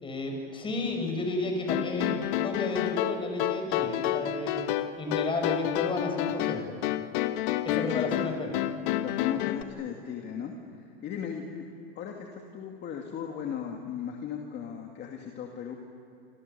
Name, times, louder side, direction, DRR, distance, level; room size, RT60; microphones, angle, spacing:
voice 1, 0.0-4.6 5.0-6.8 7.6-8.5, left 2 dB, 15° left, 3 dB, 6.5 m, -32 dB
sound 1, 1.7-9.6, left 12 dB, 55° left, 1.4 m, -29 dB
voice 2, 7.7-8.2 9.0-10.5 11.0-11.6 12.0-15.7, left 8 dB, 35° left, 2 dB, 2.5 m, -37 dB
28.0 x 27.5 x 7.0 m, 2.8 s
supercardioid pair, 130°, 31 cm